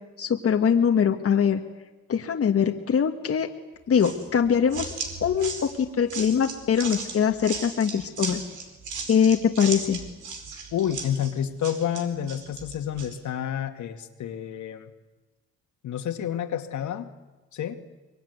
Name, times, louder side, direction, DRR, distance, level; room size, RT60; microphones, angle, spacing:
voice 1, 0.2-1.6 2.1-3.5 3.9-4.9 5.2-8.4 9.1-10.0, left 7 dB, 50° left, 3 dB, 1.7 m, -22 dB
sound 1, 4.0-13.2, right 4 dB, 80° right, 4.8 m, -36 dB
voice 2, 10.7-14.9 15.8-17.1 17.5-17.8, left 9 dB, 75° left, 5 dB, 2.3 m, -29 dB
23.5 x 23.0 x 9.6 m, 1.2 s
cardioid pair, 90°, 30 cm